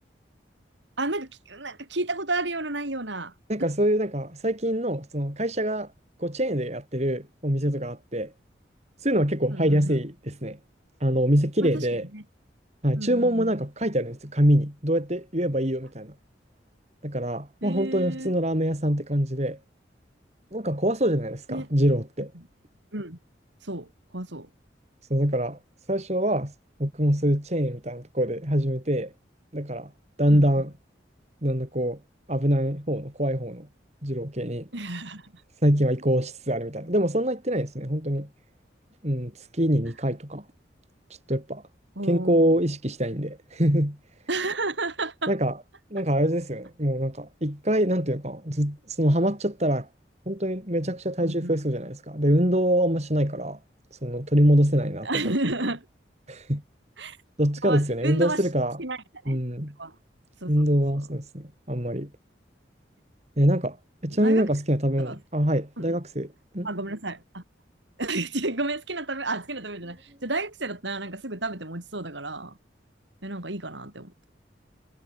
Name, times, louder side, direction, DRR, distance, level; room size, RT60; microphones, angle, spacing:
voice 1, 1.0-3.3 3.6-3.7 9.5-10.0 11.6-11.9 12.1-12.2 13.0-13.5 17.6-18.3 21.5-21.7 22.3-22.4 22.9-23.2 23.6-24.5 30.3-30.6 34.7-35.4 42.0-42.6 44.3-45.3 51.2-51.5 55.0-55.9 57.0-57.2 57.6-58.4 58.8-59.4 59.8-59.9 60.4-60.7 64.1-64.5 65.0-65.2 65.8-66.0 66.6-67.4 68.0-72.6 73.2-74.3, right 2 dB, 80° right, 5.7 m, -32 dB
voice 2, 3.5-5.9 6.2-8.3 9.0-10.6 11.0-12.1 12.8-16.1 17.0-19.6 20.5-22.3 25.1-25.6 25.9-26.5 26.8-29.1 29.5-29.9 30.2-30.7 31.4-32.0 32.3-33.7 34.0-34.7 35.6-38.3 39.0-40.4 41.3-41.6 42.1-44.0 45.3-45.6 45.9-49.9 50.3-53.6 54.0-55.2 56.3-56.6 57.4-58.8 59.3-59.7 60.5-62.1 63.4-63.8 64.0-66.3 66.5-66.7, equal, 35° right, 5.4 m, -24 dB
head